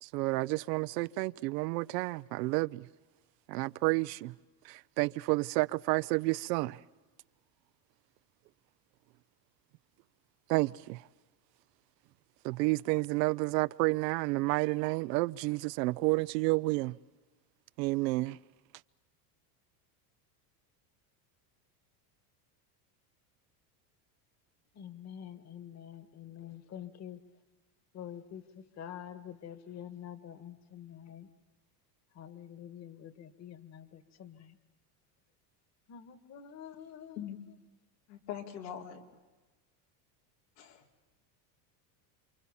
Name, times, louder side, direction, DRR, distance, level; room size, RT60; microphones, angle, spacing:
voice 1, 0.0-2.9 3.5-4.3 4.6-6.8 10.5-11.1 12.4-17.0 17.8-18.4, right 23 dB, 80° right, 0.8 m, -30 dB
voice 2, 24.8-27.2 27.9-28.4 28.8-31.3 32.2-34.6 35.9-37.2, left 9 dB, 35° left, 1.7 m, -47 dB
voice 3, 38.1-39.0 40.6-40.8, left 9 dB, 85° left, 3.8 m, -42 dB
29.0 x 25.5 x 7.1 m
supercardioid pair, 140°, 49 cm